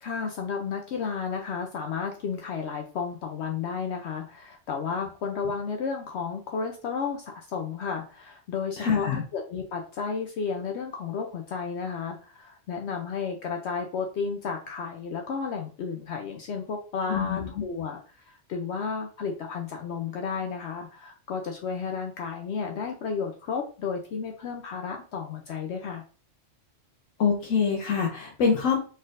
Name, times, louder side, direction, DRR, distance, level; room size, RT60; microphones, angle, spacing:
voice 1, 0.0-26.0, left 5 dB, 70° left, 3 dB, 0.8 m, -32 dB
voice 2, 8.8-9.2 17.1-17.5 27.2-28.8, left 6 dB, 90° left, 0 dB, 1.1 m, -25 dB
4.1 x 3.9 x 2.5 m, 0.39 s
omnidirectional pair, 1.3 m